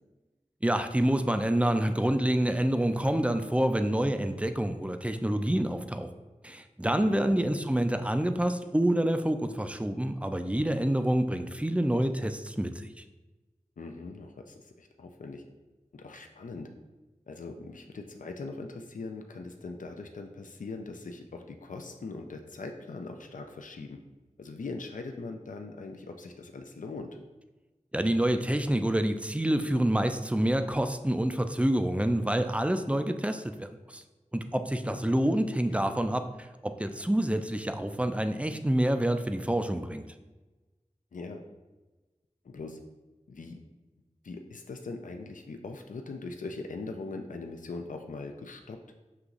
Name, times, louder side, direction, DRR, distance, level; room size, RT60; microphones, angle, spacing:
voice 1, 0.6-6.1 6.4-13.0 27.9-34.0 34.3-36.3 36.6-40.0, right 1 dB, 10° right, 7 dB, 0.3 m, -27 dB
voice 2, 6.9-7.4 8.0-8.1 13.8-15.4 15.9-16.7 17.3-24.0 24.4-27.2 34.8-35.3 35.8-36.0 41.1-41.4 42.4-42.8 43.3-43.6 44.2-48.8, left 3 dB, 80° left, 5 dB, 0.4 m, -41 dB
6.6 x 2.9 x 2.4 m, 1.2 s
wide cardioid pair, 55°, 13 cm